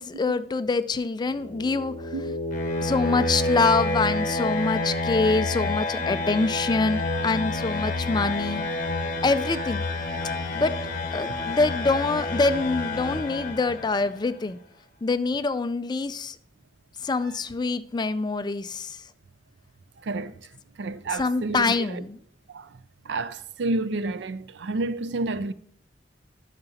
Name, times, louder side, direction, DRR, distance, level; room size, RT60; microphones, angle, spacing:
voice 1, 0.0-2.1 2.8-8.6 9.2-9.8 10.5-10.8 11.1-14.6 15.0-16.4 17.0-19.0 21.1-22.2, left 3 dB, 25° left, 0.4 m, -25 dB
sound 1, 1.3-14.1, left 2 dB, 45° left, 1.2 m, -29 dB
voice 2, 20.0-20.5 20.8-22.0 22.5-22.7 23.0-25.5, right 2 dB, 70° right, 0.5 m, -30 dB
11.0 x 6.7 x 2.8 m
head